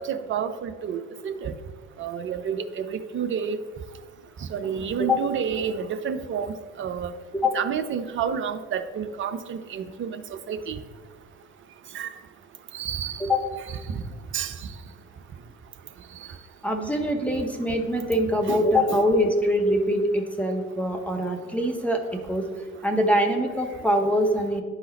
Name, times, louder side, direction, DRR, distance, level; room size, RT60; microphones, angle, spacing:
voice 1, 0.1-1.5 2.0-3.6 4.5-7.1 7.5-10.7 11.9-12.1 12.7-13.2 14.3-14.5 18.5-19.0, right 7 dB, 30° right, 9 dB, 0.6 m, -30 dB
voice 2, 16.6-22.5 22.8-24.6, equal, 5° left, 1 dB, 0.9 m, -23 dB
10.5 x 3.9 x 4.1 m, 1.5 s
figure-of-eight pair, 55°, 40 cm